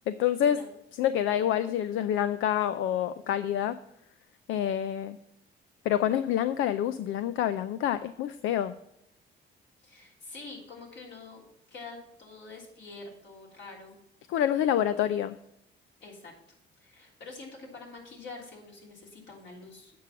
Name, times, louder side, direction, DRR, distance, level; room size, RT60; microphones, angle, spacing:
voice 1, 0.1-0.6 1.0-3.8 4.5-5.2 5.9-8.7 14.3-15.4, left 10 dB, 85° left, 13 dB, 0.4 m, -27 dB
voice 2, 9.8-11.5 11.7-14.0 16.0-16.3 16.8-19.9, left 3 dB, 65° left, -2 dB, 3.4 m, -46 dB
8.4 x 6.1 x 5.7 m, 0.82 s
cardioid pair, 90°, 20 cm